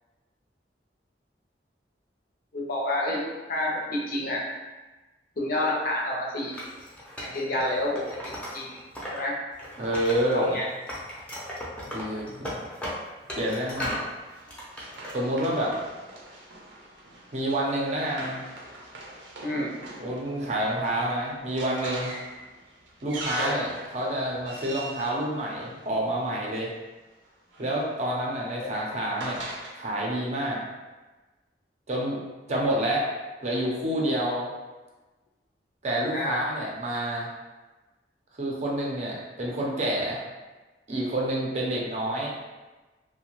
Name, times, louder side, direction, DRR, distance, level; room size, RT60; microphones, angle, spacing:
voice 1, 2.5-3.2 3.5-4.5 5.4-6.5 7.2-8.2 8.5-8.8 9.1-9.3 10.3-10.6 19.4-19.7 23.4-23.6 28.6-28.8 36.1-36.4, left 1 dB, 55° left, -3 dB, 0.6 m, -28 dB
Wood, 6.5-9.2 9.5-10.6 10.9-14.1 14.5-15.1, equal, 5° left, 0.5 m, -36 dB
voice 2, 9.8-10.6 11.8-12.5 13.4-14.0 15.1-15.8 17.3-18.4 20.0-22.1 23.0-26.7 27.6-29.4 29.8-30.6 31.9-32.2 32.5-33.1 33.4-34.5 35.8-37.3 38.4-40.2 40.9-42.3, right 1 dB, 40° right, -3 dB, 0.5 m, -28 dB
Run, 13.6-26.3 27.3-29.7, right 2 dB, 90° right, 0.6 m, -42 dB
2.6 x 2.1 x 2.9 m, 1.2 s
head